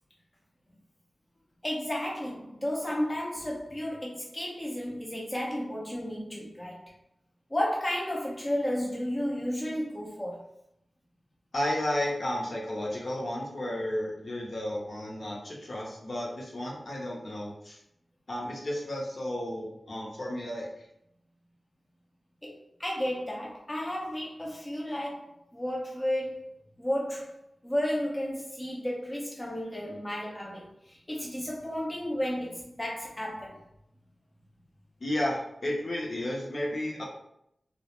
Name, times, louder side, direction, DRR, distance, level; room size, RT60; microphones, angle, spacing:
voice 1, 1.6-6.9 7.5-10.5 22.4-26.5 26.8-27.4 27.6-33.6, equal, 20° left, -3 dB, 0.4 m, -33 dB
voice 2, 11.5-17.8 18.3-20.9 35.0-37.0, left 1 dB, 55° left, -3 dB, 0.6 m, -33 dB
2.3 x 2.0 x 2.9 m, 0.77 s
wide cardioid pair, 100°, 0 cm